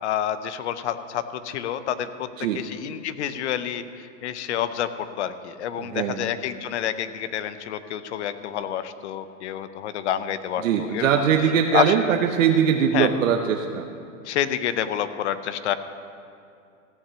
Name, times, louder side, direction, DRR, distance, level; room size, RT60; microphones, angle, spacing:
voice 1, 0.0-2.3 2.5-11.1 11.7-11.9 12.9-13.1 14.2-15.8, left 10 dB, 60° left, 12 dB, 0.7 m, -28 dB
voice 2, 5.8-6.3 10.6-13.9, right 8 dB, 75° right, 3 dB, 0.9 m, -21 dB
15.0 x 5.9 x 6.8 m, 2.5 s
supercardioid pair, 160°, 39 cm